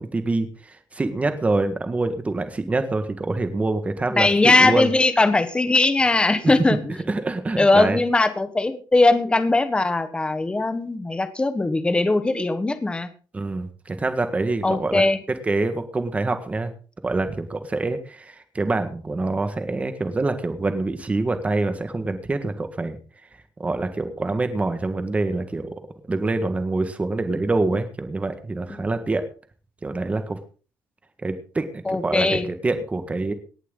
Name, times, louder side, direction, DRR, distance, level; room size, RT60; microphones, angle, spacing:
voice 1, 0.0-4.9 6.4-6.5 7.1-8.0 13.3-15.0 15.5-16.7 17.0-23.0 23.6-25.7 26.1-29.3 29.8-30.4 31.2-32.4 32.6-33.3, right 2 dB, 20° right, 9 dB, 1.7 m, -25 dB
voice 2, 4.2-7.0 7.6-13.1 14.6-15.2 28.7-28.8 31.8-32.5, left 2 dB, 15° left, 10 dB, 1.4 m, -20 dB
18.5 x 11.0 x 4.0 m, 0.38 s
cardioid pair, 150°, 8 cm